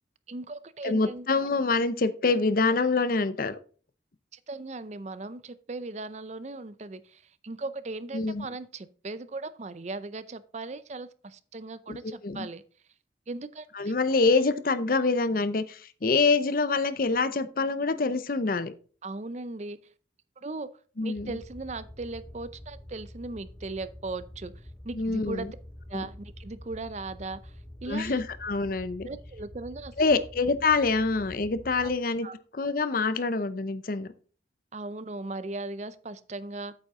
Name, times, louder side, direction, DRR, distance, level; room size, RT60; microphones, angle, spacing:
voice 1, 0.3-1.3 4.3-12.6 13.3-13.7 19.0-19.8 20.4-20.7 21.0-24.5 24.8-25.5 25.9-27.5 27.8-28.2 29.0-30.2 31.8-31.9 32.2-32.4 34.7-36.7, right 3 dB, 40° right, 0.5 m, -38 dB
voice 2, 0.8-3.6 8.1-8.5 11.9-12.5 13.7-18.7 21.0-21.4 25.0-25.5 25.9-26.1 27.9-29.1 30.0-32.3 32.5-34.1, left 3 dB, 50° left, 0.6 m, -26 dB
sound 1, 21.2-31.9, left 1 dB, 20° left, 2.1 m, -47 dB
8.4 x 7.7 x 3.6 m
head